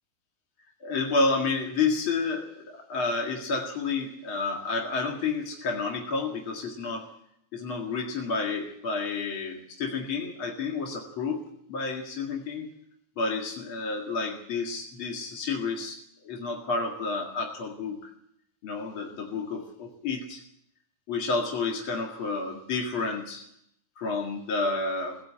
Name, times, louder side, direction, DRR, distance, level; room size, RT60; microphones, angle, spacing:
voice 1, 0.8-7.1 7.5-11.4 11.7-12.7 13.2-16.0 16.2-18.1 18.6-20.4 21.1-23.4 24.0-25.2, left 4 dB, 40° left, 1 dB, 2.1 m, -30 dB
19.5 x 16.5 x 8.7 m, 0.75 s
omnidirectional pair, 4.6 m